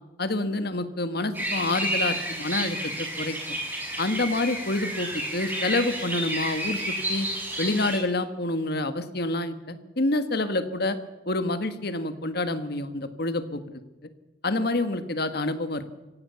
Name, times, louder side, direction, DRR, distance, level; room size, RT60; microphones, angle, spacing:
voice 1, 0.2-3.4 4.0-7.3 7.6-11.0 11.3-13.8 14.4-16.0, left 2 dB, 55° left, 10 dB, 1.6 m, -28 dB
sound 1, 1.3-8.0, right 1 dB, 10° right, 6.1 m, -31 dB
25.0 x 16.5 x 7.0 m, 1.1 s
head